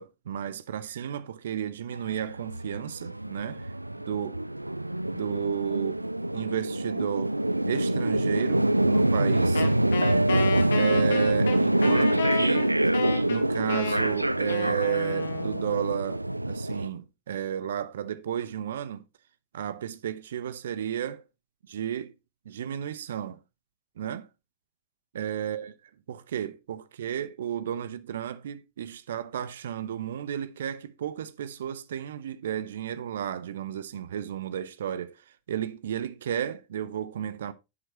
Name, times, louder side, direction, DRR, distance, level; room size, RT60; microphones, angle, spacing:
voice 1, 0.0-3.7 4.0-4.4 5.1-6.0 6.3-7.4 7.6-9.7 10.8-12.7 13.2-19.0 19.5-21.2 21.7-22.1 22.5-23.4 24.0-24.3 25.1-25.7 26.1-35.2 35.5-37.5, right 9 dB, 60° right, 0.8 m, -33 dB
sound 1, 1.9-16.9, right 1 dB, 85° right, 0.4 m, -26 dB
Wind instrument woodwind instrument, 9.5-15.8, left 6 dB, 65° left, 1.6 m, -33 dB
11.0 x 7.9 x 2.9 m
figure-of-eight pair, 90°, 0 cm